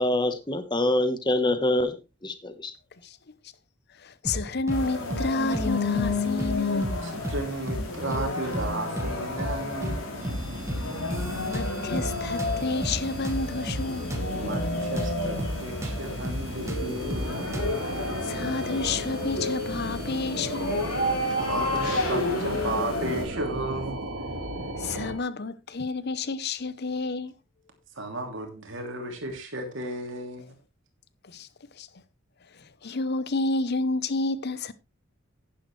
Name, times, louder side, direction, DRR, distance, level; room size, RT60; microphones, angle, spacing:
voice 1, 0.0-2.0 2.2-2.7, left 1 dB, 20° left, 1.2 m, -25 dB
voice 2, 4.0-6.9 11.4-14.1 18.2-20.8 24.8-27.3 31.3-31.5 31.8-31.9 32.5-34.7, left 3 dB, 50° left, 0.8 m, -30 dB
sound 1, 4.2-4.8 5.1-5.3 5.5-6.5 6.8-7.0 7.2-8.3 8.5-8.7 9.0-10.0 10.2-10.4 10.7-12.1 12.4-15.1 15.4-15.5 15.8-17.8, equal, 15° right, 1.7 m, -32 dB
sound 2, 4.7-23.2, left 2 dB, 85° left, 3.7 m, -31 dB
voice 3, 7.0-10.1 14.3-17.4 21.3-24.0 28.0-30.5, right 2 dB, 60° right, 3.0 m, -34 dB
sound 3, 10.1-25.1, right 1 dB, 90° right, 3.4 m, -37 dB
10.5 x 10.5 x 3.2 m
head